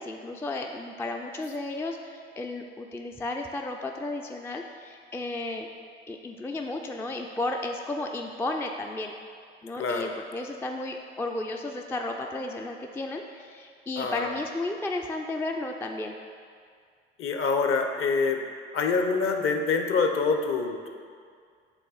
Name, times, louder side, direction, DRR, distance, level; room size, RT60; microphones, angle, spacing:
voice 1, 0.0-5.7 6.1-9.1 9.6-16.2, left 2 dB, 10° left, 2 dB, 0.3 m, -33 dB
voice 2, 9.8-10.1 14.0-14.3 17.2-18.4 18.7-20.9, left 4 dB, 40° left, 5 dB, 0.7 m, -26 dB
8.1 x 3.6 x 4.0 m, 2.1 s
figure-of-eight pair, 55°, 31 cm